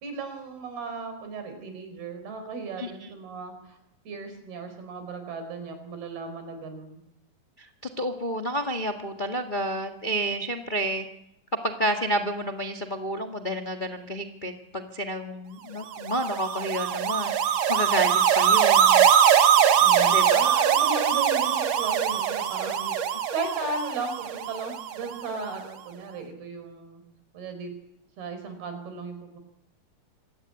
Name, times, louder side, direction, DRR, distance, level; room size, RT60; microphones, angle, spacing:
voice 1, 0.0-3.8 4.1-7.0 19.8-23.0 23.3-27.0 27.3-27.7 28.2-29.4, right 4 dB, 85° right, 8 dB, 6.3 m, -36 dB
voice 2, 2.8-3.1 7.6-7.7 8.0-11.1 11.6-19.0 20.1-20.7, right 1 dB, 85° left, 3 dB, 0.4 m, -30 dB
sound 1, 15.9-25.2, right 8 dB, 55° right, 2.2 m, -22 dB
25.5 x 17.0 x 9.8 m, 0.80 s
omnidirectional pair, 4.3 m